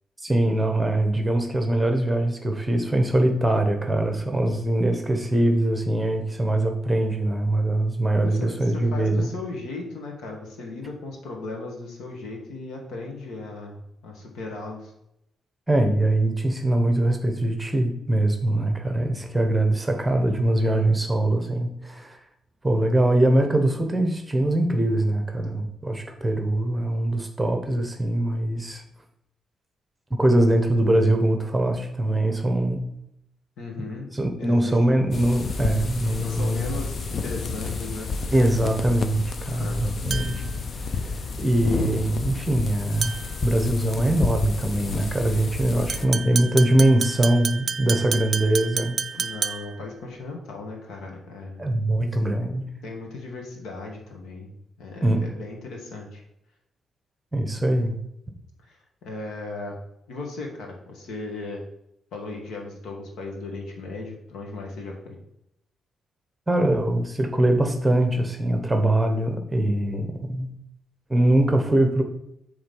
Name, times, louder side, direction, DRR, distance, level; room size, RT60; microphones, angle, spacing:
voice 1, 0.2-9.3 15.7-22.2 22.6-28.8 30.1-32.8 34.1-36.7 38.3-40.4 40.8-43.2 43.4-49.0 51.6-52.6 55.0-55.2 57.3-57.9 66.5-70.5 71.1-72.0, right 1 dB, 15° right, 4 dB, 1.0 m, -22 dB
voice 2, 8.1-14.9 33.6-34.1 34.4-35.1 36.1-38.1 39.5-39.8 45.9-46.1 49.2-51.7 52.8-54.5 54.8-56.2 58.6-59.8 60.1-61.6 62.1-65.2, left 3 dB, 85° left, 0 dB, 1.8 m, -37 dB
sound 1, 35.1-46.1, left 4 dB, 45° left, 0.6 m, -30 dB
sound 2, 40.1-40.5 43.0-43.4 45.9-49.8, right 6 dB, 45° right, 0.3 m, -30 dB
7.7 x 3.7 x 5.5 m, 0.80 s
cardioid pair, 120°, 0 cm